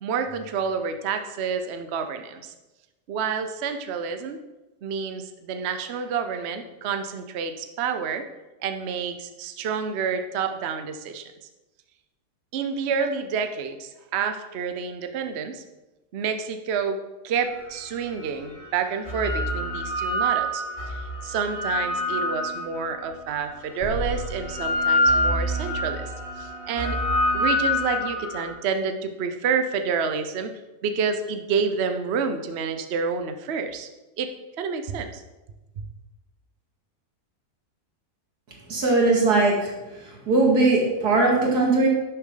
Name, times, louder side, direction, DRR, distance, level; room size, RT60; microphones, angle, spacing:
voice 1, 0.0-2.5 3.1-4.4 4.8-8.3 8.6-11.2 12.5-15.6 16.1-17.0 17.2-21.0 21.2-26.1 26.4-27.0 27.3-30.5 30.8-33.9 34.2-35.2, right 6 dB, 55° right, 8 dB, 0.9 m, -29 dB
sound 1, 17.7-17.8 18.8-23.0 23.8-28.5, left 1 dB, 30° left, 1.7 m, -26 dB
voice 2, 38.7-39.7 40.3-41.9, right 3 dB, 90° right, -1 dB, 2.7 m, -19 dB
11.5 x 6.9 x 3.8 m, 1.1 s
omnidirectional pair, 1.7 m